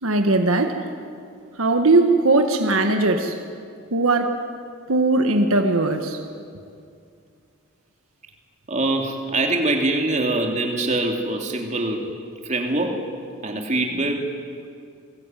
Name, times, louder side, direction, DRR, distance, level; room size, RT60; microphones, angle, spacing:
voice 1, 0.0-0.9 1.6-3.4 3.9-4.5 4.9-6.2, right 2 dB, 75° right, 5 dB, 1.7 m, -19 dB
voice 2, 8.7-12.0 12.4-13.1 13.4-14.3, right 2 dB, 35° right, 2 dB, 3.0 m, -23 dB
29.0 x 20.5 x 9.3 m, 2.4 s
head